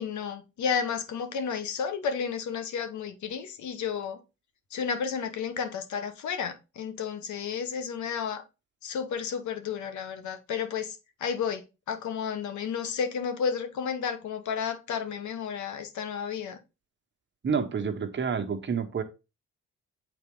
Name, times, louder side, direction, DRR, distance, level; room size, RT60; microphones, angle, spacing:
voice 1, 0.0-4.2 4.7-8.4 8.8-16.6, left 6 dB, 70° left, 1.1 m, -32 dB
voice 2, 17.4-19.0, right 6 dB, 40° right, 1.2 m, -29 dB
7.3 x 4.3 x 3.7 m
cardioid pair, 90°, 30 cm